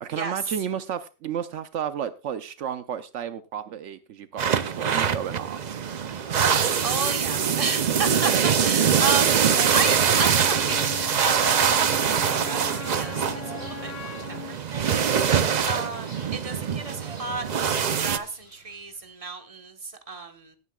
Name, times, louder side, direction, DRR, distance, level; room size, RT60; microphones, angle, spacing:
voice 1, 0.0-5.6, right 9 dB, 80° right, 1.0 m, -32 dB
sound 1, 4.4-18.2, right 7 dB, 45° right, 0.6 m, -23 dB
voice 2, 6.6-11.6 12.0-20.6, right 4 dB, 30° right, 1.3 m, -33 dB
Bird vocalization bird call bird song, 9.5-19.1, equal, 15° left, 5.5 m, -49 dB
Wind instrument woodwind instrument, 10.1-14.6, left 10 dB, 60° left, 0.9 m, -40 dB
17.5 x 9.5 x 2.3 m
omnidirectional pair, 1.2 m